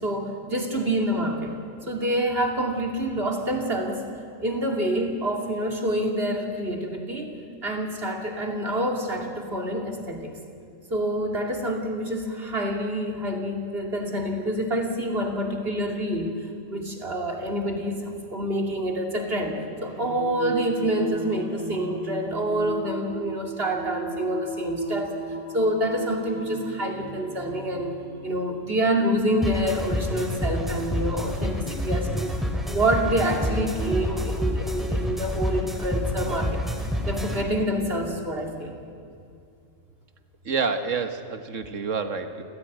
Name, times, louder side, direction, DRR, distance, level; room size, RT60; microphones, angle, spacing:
voice 1, 0.0-1.5 1.8-4.0 4.4-7.3 7.6-10.3 10.9-19.6 19.8-25.1 25.5-32.4 32.7-36.6 37.0-38.8, right 1 dB, 50° right, 2 dB, 2.8 m, -27 dB
Singing, 19.8-33.9, right 3 dB, 25° right, 4.1 m, -37 dB
sound 1, 29.4-37.4, left 1 dB, ahead, 2.3 m, -28 dB
voice 2, 40.5-42.4, right 5 dB, 70° right, 8 dB, 1.7 m, -28 dB
29.0 x 15.5 x 9.3 m, 2.4 s
omnidirectional pair, 1.3 m